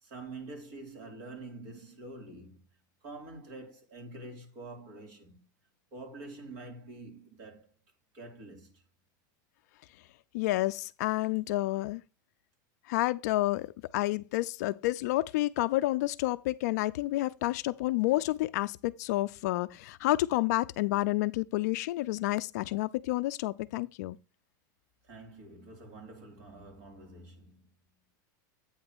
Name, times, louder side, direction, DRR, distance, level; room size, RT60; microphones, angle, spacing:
voice 1, 0.0-2.6 3.0-5.4 5.9-7.7 8.1-8.8 25.0-27.7, right 2 dB, 45° right, 2.7 m, -46 dB
voice 2, 10.3-12.0 12.9-24.2, left 18 dB, 55° left, 0.4 m, -29 dB
8.7 x 3.2 x 6.0 m
supercardioid pair, 170°, 11 cm